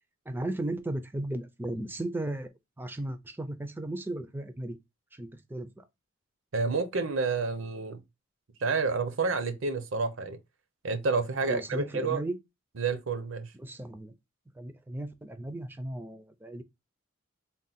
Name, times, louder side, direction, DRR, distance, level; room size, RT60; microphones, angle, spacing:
voice 1, 0.3-2.5 2.8-4.8 5.1-5.8 11.4-12.4 13.6-14.1 14.6-16.6, right 1 dB, 10° right, 0.4 m, -35 dB
voice 2, 6.5-8.0 8.6-10.4 10.8-12.2 12.8-13.5, right 4 dB, 70° right, 0.7 m, -29 dB
3.6 x 2.2 x 4.1 m
head